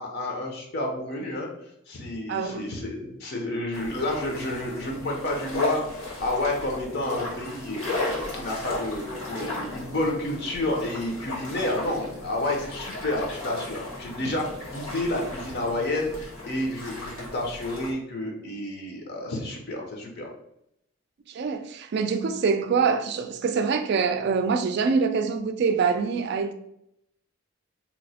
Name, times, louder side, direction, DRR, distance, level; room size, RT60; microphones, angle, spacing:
voice 1, 0.0-1.5 1.9-20.3, left 1 dB, 50° left, 0.6 m, -30 dB
voice 2, 2.3-2.7 21.3-26.5, right 5 dB, 55° right, 0.3 m, -25 dB
sound 1, 3.7-17.9, left 2 dB, 85° left, 1.2 m, -36 dB
2.9 x 2.0 x 4.0 m
head